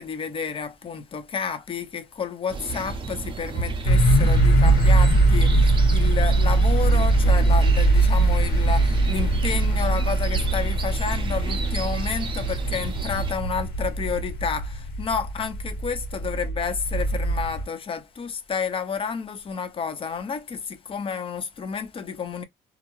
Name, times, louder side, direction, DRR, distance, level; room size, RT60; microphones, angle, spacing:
voice 1, 0.0-22.4, left 6 dB, 30° left, 0.6 m, -30 dB
sound 1, 2.5-13.3, right 4 dB, 30° right, 0.6 m, -33 dB
sound 2, 3.8-17.6, right 2 dB, 65° left, 1.2 m, -21 dB
2.4 x 2.1 x 3.0 m
cardioid pair, 110°, 17 cm